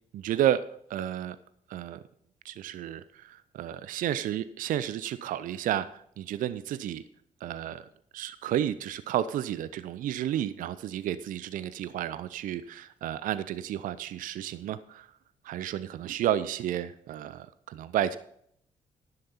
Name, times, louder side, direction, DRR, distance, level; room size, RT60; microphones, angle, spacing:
voice 1, 0.1-0.6 0.9-1.4 1.7-2.0 2.4-5.9 6.2-7.0 7.4-7.8 8.1-15.1 15.4-18.2, right 11 dB, 55° right, 15 dB, 0.5 m, -31 dB
10.5 x 10.0 x 4.1 m, 0.69 s
hypercardioid pair, 45°, 16 cm